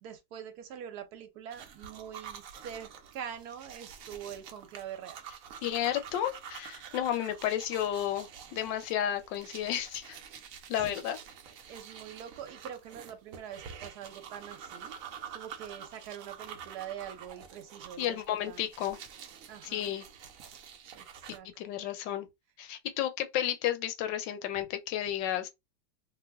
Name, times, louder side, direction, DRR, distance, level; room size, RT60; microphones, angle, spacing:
voice 1, 0.0-5.2 10.8-11.0 11.7-14.9 15.3-18.7 19.5-20.0 20.6-21.1 21.3-21.5, right 9 dB, 70° right, 1.0 m, -44 dB
sound 1, 1.5-21.4, right 8 dB, 85° right, 0.7 m, -48 dB
voice 2, 5.6-10.2 10.7-11.2 18.0-19.0 19.6-20.0 21.6-22.3 22.6-25.5, left 11 dB, 75° left, 1.2 m, -32 dB
3.0 x 2.1 x 3.3 m
omnidirectional pair, 2.0 m